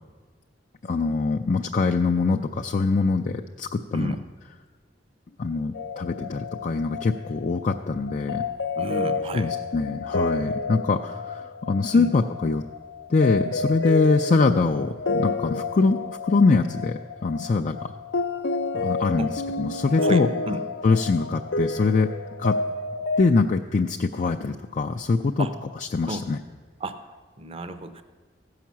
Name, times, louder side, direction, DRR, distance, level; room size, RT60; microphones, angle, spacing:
voice 1, 0.8-4.2 5.4-8.4 9.3-12.6 13.1-17.9 18.7-20.3 20.8-22.1 22.4-22.6 23.2-25.5 25.8-26.4, left 4 dB, 45° left, 4 dB, 0.4 m, -23 dB
sound 1, 5.7-23.2, left 3 dB, 80° left, 0.7 m, -30 dB
voice 2, 8.8-9.5 11.9-12.1 19.2-19.3 20.0-20.6 25.4-25.5 26.1-26.3 26.8-27.0 27.4-28.0, right 2 dB, 35° right, 10 dB, 0.7 m, -32 dB
15.0 x 5.7 x 7.3 m, 1.4 s
head